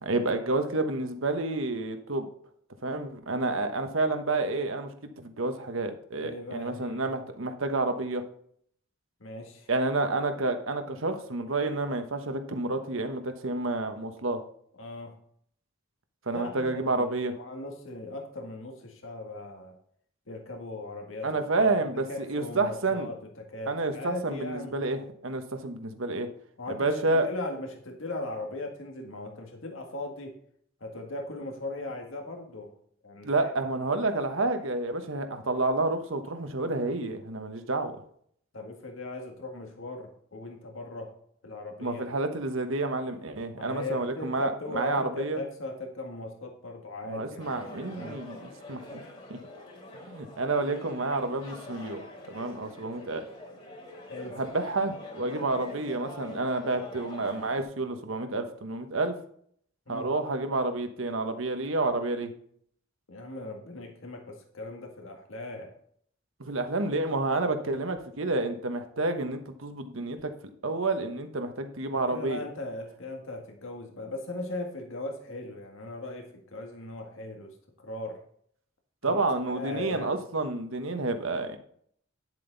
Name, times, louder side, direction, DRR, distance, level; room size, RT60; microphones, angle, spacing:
voice 1, 0.0-2.3 2.8-8.2 9.7-14.4 16.3-17.3 21.2-23.1 23.7-26.3 26.7-27.3 33.2-38.0 41.8-45.4 47.1-49.0 49.3-49.4 50.0-53.3 54.4-59.2 59.9-62.3 66.4-70.3 70.6-72.4 79.0-81.6, right 2 dB, 75° right, 7 dB, 1.2 m, -29 dB
voice 2, 6.2-7.1 9.2-9.7 14.8-15.2 16.3-19.7 20.3-21.7 22.1-24.8 26.6-30.3 30.8-32.7 33.0-33.5 38.5-41.1 41.4-42.0 43.5-47.6 47.9-48.2 50.6-50.8 54.1-54.4 59.9-60.1 63.1-65.7 71.9-78.2 79.0-79.2 79.5-80.2, left 2 dB, 70° left, 3 dB, 1.8 m, -39 dB
sound 1, 47.4-57.6, left 1 dB, 30° left, 3.0 m, -45 dB
10.0 x 7.5 x 4.0 m, 0.63 s
head